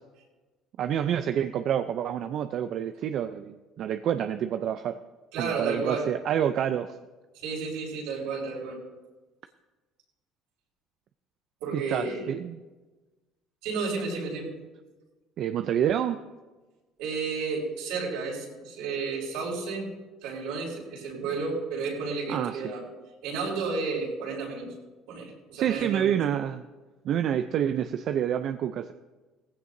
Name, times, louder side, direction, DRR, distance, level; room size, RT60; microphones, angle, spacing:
voice 1, 0.8-5.0 5.4-6.9 11.7-12.6 15.4-16.2 22.3-22.7 25.6-26.6 27.0-28.9, right 9 dB, 60° right, 8 dB, 0.6 m, -28 dB
voice 2, 5.3-6.1 7.4-8.8 11.6-12.3 13.6-14.5 17.0-19.9 20.2-22.8 23.2-24.7 25.1-26.2, right 4 dB, 85° right, -3 dB, 5.2 m, -32 dB
18.0 x 15.5 x 2.7 m, 1.2 s
supercardioid pair, 90°, 0 cm